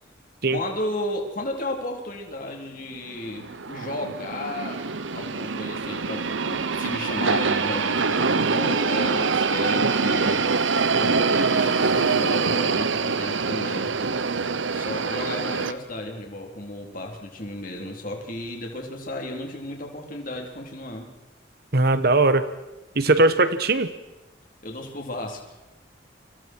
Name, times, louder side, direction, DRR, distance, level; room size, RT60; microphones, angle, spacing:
voice 1, 0.5-4.8 5.1-10.5 10.9-13.9 14.7-21.1 24.6-25.7, left 1 dB, 45° left, 1 dB, 3.8 m, -33 dB
sound 1, 3.1-15.7, right 4 dB, 90° right, 1.0 m, -24 dB
voice 2, 21.7-22.4 23.0-23.9, right 2 dB, 55° right, 11 dB, 1.2 m, -19 dB
29.5 x 25.5 x 4.7 m, 1.0 s
head